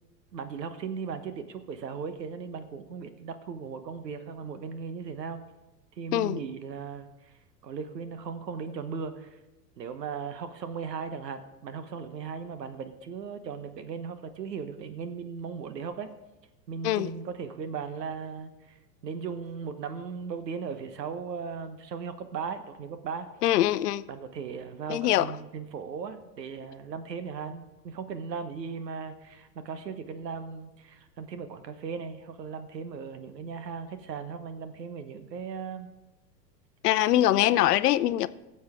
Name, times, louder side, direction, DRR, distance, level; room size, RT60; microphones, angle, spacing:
voice 1, 0.3-5.4 6.0-7.1 7.6-9.3 9.8-16.1 16.7-18.8 19.0-23.3 24.1-35.9, right 6 dB, 80° right, 1.2 m, -37 dB
voice 2, 23.4-24.0 24.9-25.4 36.8-38.3, left 13 dB, 70° left, 0.7 m, -23 dB
17.0 x 7.3 x 3.6 m
hypercardioid pair, 95°, 49 cm